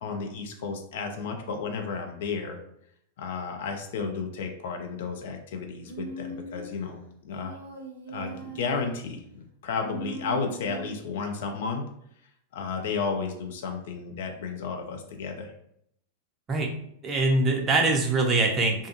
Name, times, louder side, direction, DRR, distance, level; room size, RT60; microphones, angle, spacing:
voice 1, 0.0-2.6 3.2-7.6 8.1-11.8 12.5-15.5, left 5 dB, 55° left, 4 dB, 0.4 m, -33 dB
Human voice, 5.8-6.8 7.3-8.9 9.8-11.0, right 4 dB, 75° right, 0.7 m, -40 dB
voice 2, 17.0-18.9, right 2 dB, 25° right, 3 dB, 0.5 m, -23 dB
2.4 x 2.3 x 2.6 m, 0.72 s
figure-of-eight pair, 90°, 0 cm